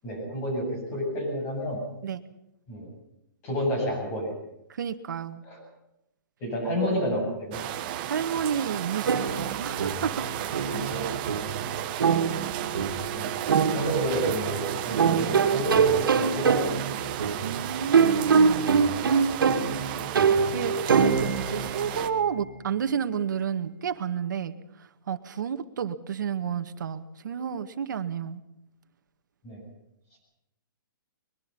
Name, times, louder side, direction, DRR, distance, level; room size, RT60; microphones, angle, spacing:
voice 1, 0.0-1.8 2.7-2.9 3.4-4.3 5.4-5.6 6.4-7.6 10.7-11.1 13.1-13.3 13.7-16.8 29.4-29.6, equal, 20° left, 2 dB, 7.9 m, -30 dB
voice 2, 4.8-5.4 8.1-10.2 14.9-15.0 17.4-18.7 20.5-24.5 25.1-28.4, right 8 dB, 60° right, 9 dB, 2.0 m, -31 dB
sound 1, 7.5-22.1, right 12 dB, 25° right, 1.4 m, -33 dB
sound 2, 9.1-22.6, right 6 dB, 80° right, 2.6 m, -25 dB
23.5 x 21.5 x 5.6 m, 0.82 s
hypercardioid pair, 175°, 11 cm